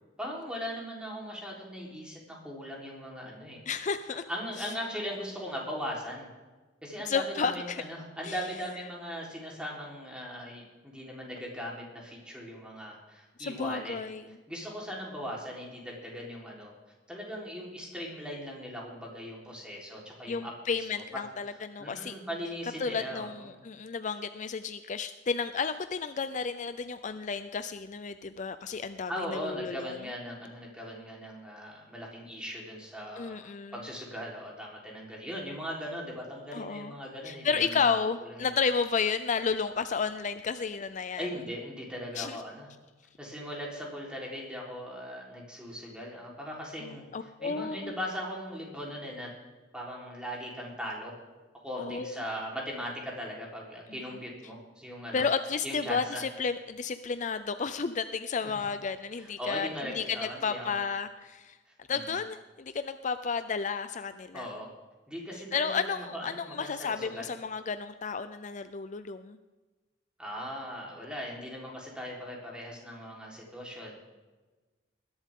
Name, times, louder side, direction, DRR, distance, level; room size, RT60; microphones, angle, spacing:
voice 1, 0.2-3.6 4.1-6.3 6.8-14.0 14.5-16.7 17.1-21.2 21.5-23.6 29.1-38.5 41.2-42.7 43.2-49.3 49.7-51.1 51.6-55.3 55.6-56.3 58.4-58.6 59.2-60.8 61.9-62.2 64.3-64.7 65.1-67.3 70.2-74.0, equal, 5° right, -3 dB, 4.0 m, -39 dB
voice 2, 3.7-4.2 7.0-7.8 8.2-8.4 13.4-14.2 20.3-22.1 22.8-29.1 29.4-30.0 33.2-33.7 36.5-36.9 37.3-41.3 42.2-42.4 47.1-47.9 51.8-52.2 55.1-59.7 59.9-61.5 61.9-64.5 65.5-69.4, left 5 dB, 45° left, 11 dB, 0.5 m, -32 dB
20.5 x 11.5 x 3.7 m, 1.2 s
head